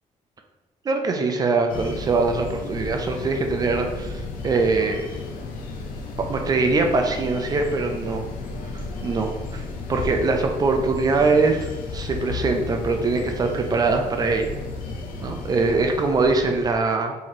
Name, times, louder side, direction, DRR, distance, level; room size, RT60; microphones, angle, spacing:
voice 1, 0.8-5.1 6.2-8.2 8.7-9.6 9.9-14.6 15.2-17.1, right 3 dB, 30° right, 4 dB, 0.4 m, -23 dB
sound 1, 1.7-16.7, left 3 dB, 85° left, 0.7 m, -33 dB
3.8 x 3.0 x 4.4 m, 1.2 s
cardioid pair, 165°, 14 cm